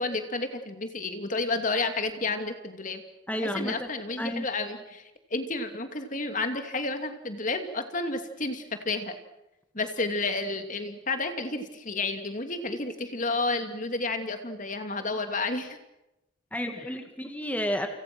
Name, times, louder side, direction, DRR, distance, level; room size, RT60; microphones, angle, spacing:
voice 1, 0.0-3.0 3.5-9.1 9.7-15.8, left 3 dB, 40° left, 7 dB, 2.6 m, -31 dB
voice 2, 3.3-3.9 4.2-4.5 16.5-17.9, equal, 10° left, 5 dB, 1.9 m, -31 dB
29.5 x 27.5 x 6.2 m, 0.92 s
head